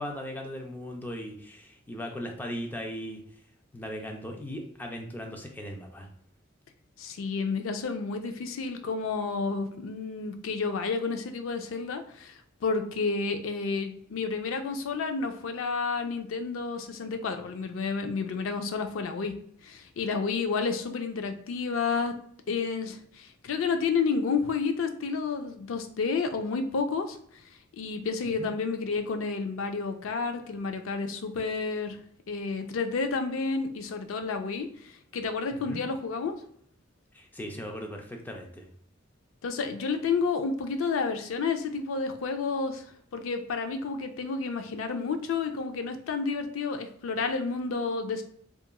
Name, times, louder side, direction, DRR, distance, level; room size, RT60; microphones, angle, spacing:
voice 1, 0.0-3.2 3.7-6.1 28.4-28.5 35.5-35.8 37.1-38.7, equal, 10° left, 2 dB, 0.3 m, -38 dB
voice 2, 7.0-19.3 19.6-22.1 22.5-27.2 27.8-32.0 32.3-36.4 39.4-42.8 43.1-48.2, left 4 dB, 85° left, 7 dB, 0.4 m, -30 dB
2.9 x 2.4 x 2.2 m, 0.65 s
head